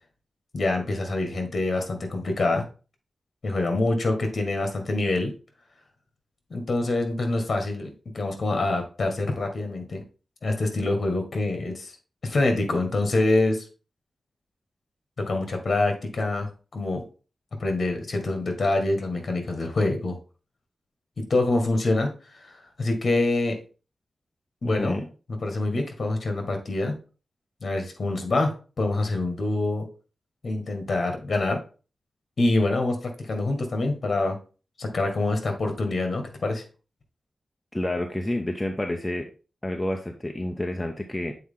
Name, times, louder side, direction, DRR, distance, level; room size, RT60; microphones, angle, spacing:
voice 1, 0.5-2.6 3.4-5.3 6.5-10.0 10.4-11.9 12.2-13.6 15.2-17.0 17.6-20.2 21.3-23.6 24.6-25.0 25.4-26.9 27.6-29.8 30.4-31.6 32.4-34.4 34.8-36.6, left 2 dB, 50° left, 5 dB, 1.7 m, -25 dB
voice 2, 24.6-25.1 37.7-39.3 39.6-41.3, left 1 dB, 10° left, 3 dB, 0.6 m, -29 dB
7.8 x 4.2 x 3.6 m, 0.35 s
wide cardioid pair, 145°, 0 cm